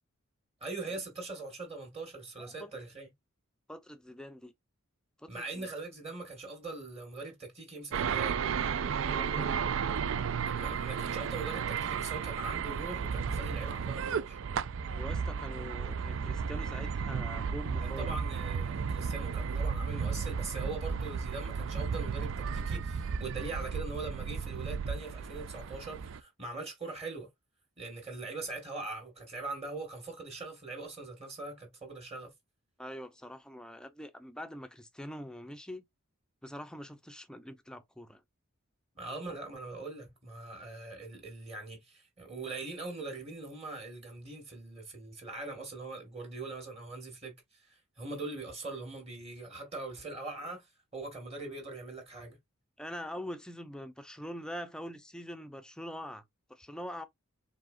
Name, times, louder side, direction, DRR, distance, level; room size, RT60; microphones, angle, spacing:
voice 1, 0.6-3.1 5.3-8.4 10.4-14.4 17.8-27.3 27.8-32.3 39.0-47.4 48.0-50.7 50.9-52.4, right 3 dB, 30° right, 1.8 m, -42 dB
voice 2, 2.4-2.8 3.7-4.5 5.2-5.7 9.1-9.8 14.9-18.2 32.8-35.8 36.4-38.2 52.8-56.2 56.5-57.1, equal, 5° left, 0.6 m, -44 dB
sound 1, 7.9-26.2, right 6 dB, 60° right, 0.4 m, -34 dB
4.8 x 3.6 x 2.5 m
head